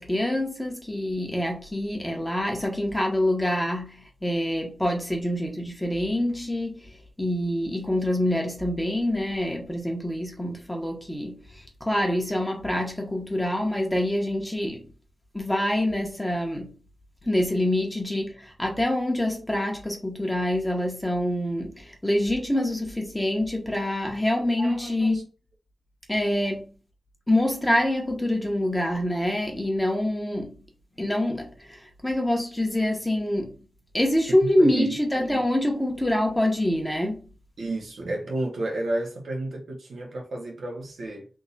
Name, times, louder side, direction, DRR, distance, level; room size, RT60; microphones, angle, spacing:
voice 1, 0.0-6.8 7.2-14.8 15.3-16.7 17.2-25.3 26.1-26.7 27.3-30.5 31.0-33.5 33.9-37.3, left 1 dB, 10° left, 1.4 m, -26 dB
voice 2, 24.6-25.2 34.4-35.0 37.6-41.3, right 2 dB, 85° right, 1.4 m, -31 dB
3.7 x 2.7 x 4.1 m
wide cardioid pair, 75°, 0 cm